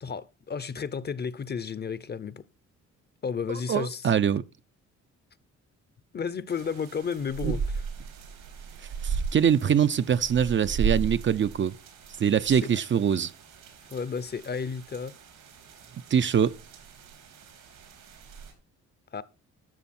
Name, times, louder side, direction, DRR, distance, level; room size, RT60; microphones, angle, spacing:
voice 1, 0.0-2.4 3.2-4.1 6.1-7.6 12.5-12.6 13.9-15.1 19.1-19.2, left 6 dB, 35° left, 0.7 m, -32 dB
voice 2, 3.5-4.4 7.4-7.5 9.0-11.7 12.2-13.3 16.1-16.6, right 8 dB, 40° right, 0.5 m, -23 dB
sound 1, 6.5-18.5, right 5 dB, 85° right, 4.1 m, -36 dB
13.0 x 6.9 x 4.3 m
cardioid pair, 90°, 30 cm